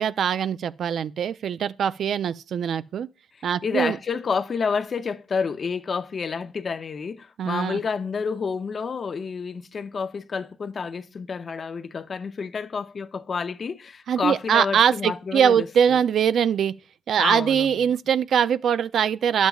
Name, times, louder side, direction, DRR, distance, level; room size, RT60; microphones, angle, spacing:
voice 1, 0.0-3.1 3.4-4.0 7.4-7.8 14.1-16.7 17.1-19.5, right 8 dB, 65° right, 0.4 m, -22 dB
voice 2, 3.6-16.0 17.2-17.7, left 5 dB, 45° left, 0.5 m, -29 dB
10.5 x 7.2 x 2.3 m
cardioid pair, 90°, 0 cm